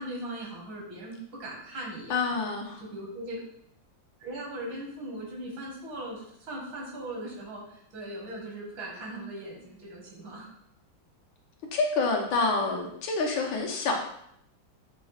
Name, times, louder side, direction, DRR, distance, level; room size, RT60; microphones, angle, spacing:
voice 1, 0.0-2.4 2.8-3.4 4.2-10.5, right 1 dB, 85° right, -3 dB, 2.1 m, -39 dB
voice 2, 2.1-2.8 11.7-13.9, left 3 dB, 80° left, 1 dB, 1.5 m, -27 dB
6.2 x 2.3 x 3.2 m, 0.72 s
omnidirectional pair, 2.1 m